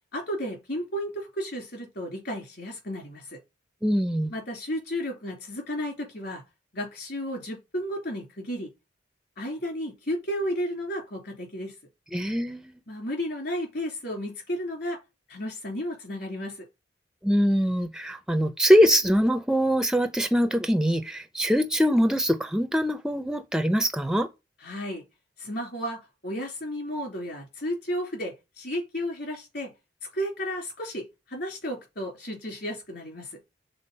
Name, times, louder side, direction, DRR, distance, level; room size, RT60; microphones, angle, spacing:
voice 1, 0.1-3.4 4.3-6.4 6.7-8.7 9.4-11.7 12.9-15.0 15.3-16.7 24.6-25.0 25.4-29.7 30.1-33.4, equal, 60° left, 2.9 m, -33 dB
voice 2, 3.8-4.3 12.1-12.7 17.2-24.3, equal, 5° right, 0.4 m, -23 dB
6.9 x 3.9 x 5.4 m
head